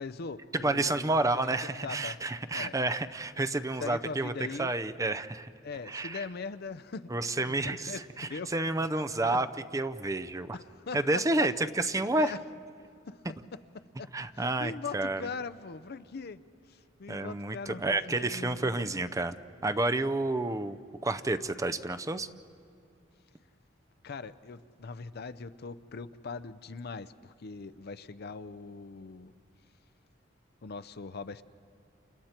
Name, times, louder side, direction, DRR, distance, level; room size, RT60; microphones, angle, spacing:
voice 1, 0.0-2.2 2.5-2.7 3.8-4.7 5.6-7.1 7.4-8.5 9.3-9.4 10.5-11.5 12.1-12.4 13.1-13.2 13.5-13.6 14.0-14.1 14.3-16.4 16.7-18.9 24.0-29.3 30.6-31.4, left 4 dB, 55° left, 13 dB, 0.6 m, -41 dB
voice 2, 0.5-4.3 4.6-5.5 5.9-6.2 7.1-9.5 9.7-10.6 10.9-12.3 14.1-15.2 17.1-19.3 19.6-20.8 21.0-22.3, right 2 dB, 15° right, 10 dB, 0.5 m, -30 dB
29.0 x 29.0 x 4.4 m, 2.3 s
head